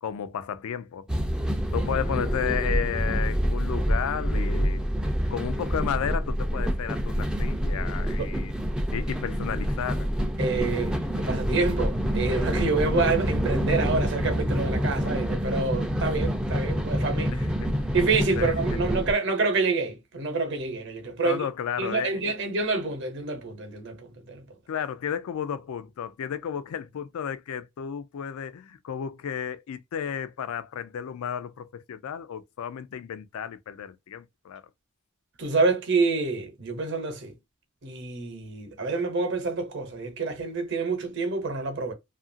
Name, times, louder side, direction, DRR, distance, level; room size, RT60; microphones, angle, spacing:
voice 1, 0.0-1.1 1.7-4.8 5.3-8.5 8.9-10.1 17.3-17.9 18.4-18.5 21.2-22.3 24.7-34.6, left 8 dB, 80° left, 0.3 m, -33 dB
sound 1, 1.1-19.1, equal, 5° right, 0.3 m, -27 dB
voice 2, 10.4-17.3 17.9-21.4 21.8-24.4 35.4-37.3 37.8-41.9, right 3 dB, 55° right, 0.8 m, -27 dB
2.8 x 2.4 x 2.4 m
head